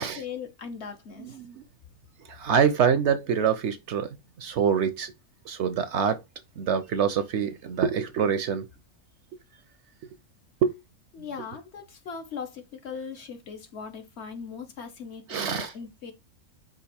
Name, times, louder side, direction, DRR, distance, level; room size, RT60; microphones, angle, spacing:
voice 1, 0.0-1.4 11.1-16.1, left 6 dB, 55° left, 0.9 m, -39 dB
voice 2, 1.2-1.6 2.3-5.1 5.5-6.2 6.6-8.7 10.6-10.7 15.3-15.7, right 7 dB, 65° right, 0.8 m, -25 dB
5.2 x 2.5 x 4.1 m
omnidirectional pair, 1.5 m